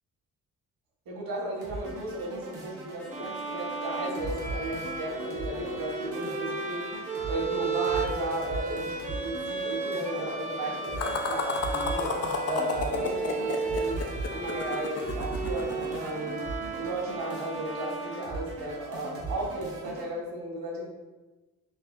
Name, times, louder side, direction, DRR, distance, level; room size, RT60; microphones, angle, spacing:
voice 1, 1.0-14.0 14.3-16.4 16.8-20.9, right 1 dB, 80° right, -3 dB, 1.4 m, -35 dB
sound 1, 1.6-20.1, right 2 dB, 40° right, 1.1 m, -39 dB
sound 2, 3.1-18.7, right 3 dB, 20° right, 0.5 m, -35 dB
sound 3, 11.0-16.1, left 4 dB, 45° left, 0.5 m, -33 dB
5.8 x 2.8 x 2.4 m, 1.2 s
cardioid pair, 105°, 35 cm